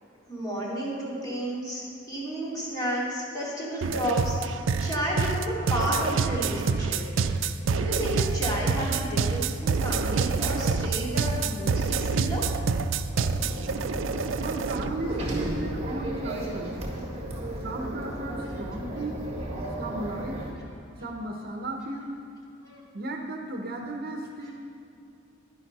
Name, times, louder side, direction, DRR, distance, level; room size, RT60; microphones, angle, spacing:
voice 1, 0.3-4.5 4.8-7.0 7.6-12.4 22.6-22.8, right 1 dB, 20° left, -6 dB, 2.8 m, -31 dB
sound 1, 3.8-14.9, right 4 dB, 75° right, 0.4 m, -27 dB
sound 2, 13.1-20.5, right 1 dB, 30° right, 1.6 m, -34 dB
voice 2, 14.4-16.9 17.6-19.2 19.8-20.4 21.0-22.1 22.9-24.5, right 1 dB, 50° right, 3 dB, 0.9 m, -35 dB
10.5 x 10.5 x 4.1 m, 2.6 s
head